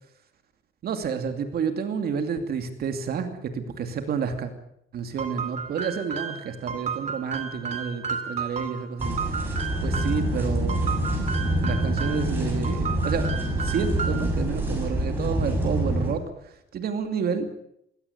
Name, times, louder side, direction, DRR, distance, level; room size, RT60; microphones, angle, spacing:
voice 1, 0.8-4.5 4.9-9.2 9.8-10.8 11.5-13.3 13.6-17.6, right 6 dB, 50° right, 7 dB, 2.7 m, -30 dB
sound 1, 5.2-10.3 10.7-12.3 12.6-14.4, right 6 dB, 35° right, 2.4 m, -33 dB
sound 2, 9.0-16.1, right 1 dB, 10° right, 7.6 m, -26 dB
21.0 x 17.0 x 9.5 m, 0.75 s
cardioid pair, 170°, 20 cm